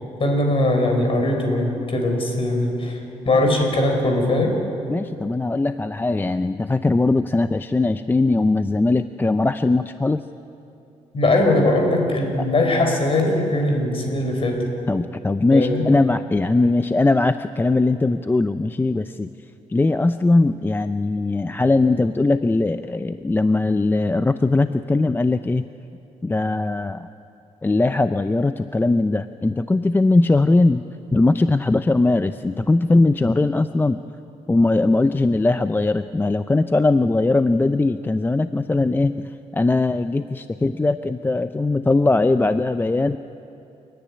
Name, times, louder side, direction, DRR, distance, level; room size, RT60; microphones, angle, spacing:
voice 1, 0.2-3.0 3.2-4.5 11.1-14.7 15.5-15.9, left 1 dB, 45° left, 3 dB, 5.0 m, -20 dB
voice 2, 4.9-10.2 12.4-12.5 14.9-19.3 19.7-25.6 26.2-27.1 27.6-30.8 31.1-34.0 34.5-43.2, left 2 dB, 15° left, 11 dB, 0.5 m, -20 dB
29.0 x 10.5 x 9.8 m, 2.8 s
cardioid pair, 90°, 14 cm